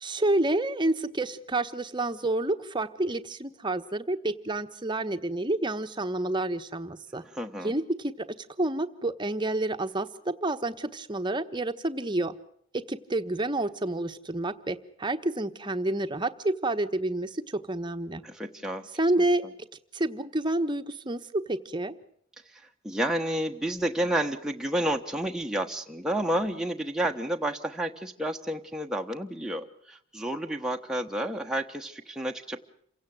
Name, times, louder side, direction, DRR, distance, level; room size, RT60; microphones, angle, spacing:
voice 1, 0.0-7.2 7.6-8.3 8.6-12.3 12.7-18.2 19.0-19.4 19.9-21.9, right 2 dB, 20° right, 9 dB, 1.2 m, -29 dB
voice 2, 7.2-7.7 18.2-18.9 19.2-19.3 22.5-32.6, right 1 dB, 5° right, 2 dB, 1.2 m, -30 dB
28.0 x 17.0 x 7.8 m, 0.67 s
head